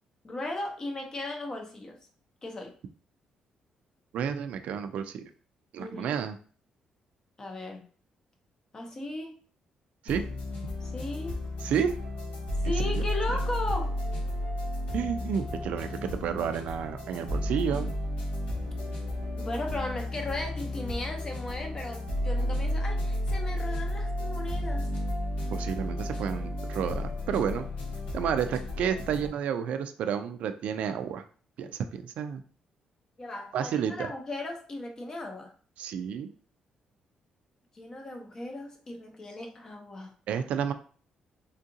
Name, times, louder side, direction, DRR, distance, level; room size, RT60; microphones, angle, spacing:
voice 1, 0.2-2.0 2.4-2.7 5.8-6.2 7.4-7.8 8.7-9.4 10.8-11.4 12.6-14.0 19.4-24.9 33.2-35.5 37.7-40.1, left 2 dB, 25° left, 3 dB, 0.7 m, -36 dB
voice 2, 4.1-5.3 5.7-6.4 10.0-10.2 11.6-11.9 12.6-13.0 14.9-17.9 25.5-27.7 28.1-31.3 31.6-32.4 33.5-34.1 35.8-36.3 40.3-40.7, right 8 dB, 70° right, 9 dB, 0.3 m, -31 dB
sound 1, 10.1-29.3, left 1 dB, 85° left, 1.5 m, -32 dB
3.6 x 2.4 x 2.7 m, 0.42 s
cardioid pair, 140°, 2 cm